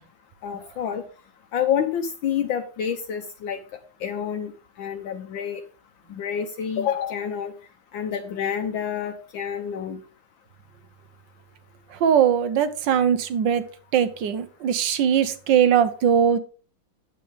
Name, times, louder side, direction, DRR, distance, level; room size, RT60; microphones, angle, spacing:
voice 1, 0.4-1.0 1.5-3.6 4.0-4.5 4.8-5.6 6.1-7.5 7.9-10.0, left 8 dB, 70° left, 5 dB, 1.5 m, -28 dB
voice 2, 12.0-13.6 13.9-16.4, right 8 dB, 70° right, 11 dB, 1.5 m, -20 dB
9.3 x 8.5 x 3.4 m, 0.37 s
omnidirectional pair, 2.2 m